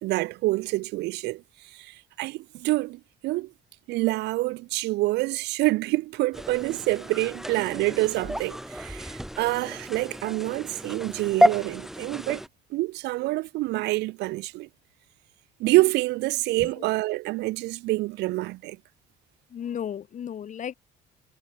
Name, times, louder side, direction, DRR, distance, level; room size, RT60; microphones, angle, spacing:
voice 1, 0.0-1.4 1.7-3.5 3.9-12.4 12.7-14.7 15.6-18.8, right 20 dB, 85° right, 0.9 m, -27 dB
sound 1, 6.3-12.5, equal, ahead, 4.8 m, -29 dB
voice 2, 19.5-20.7, left 9 dB, 50° left, 3.0 m, -34 dB
cardioid pair, 110°, 17 cm